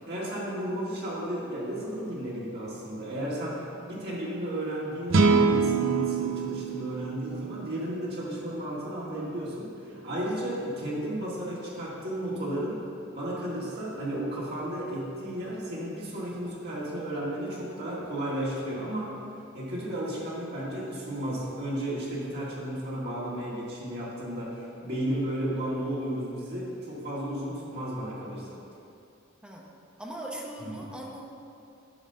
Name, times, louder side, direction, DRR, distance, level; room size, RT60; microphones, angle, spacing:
voice 1, 0.1-12.8 13.2-19.1 19.5-28.6 30.6-30.8, right 1 dB, 55° right, -7 dB, 1.8 m, -33 dB
sound 1, 5.1-8.4, right 4 dB, 80° right, 0.6 m, -25 dB
voice 2, 30.0-31.2, right 1 dB, 5° right, -2 dB, 0.9 m, -40 dB
9.7 x 4.2 x 6.6 m, 2.6 s
head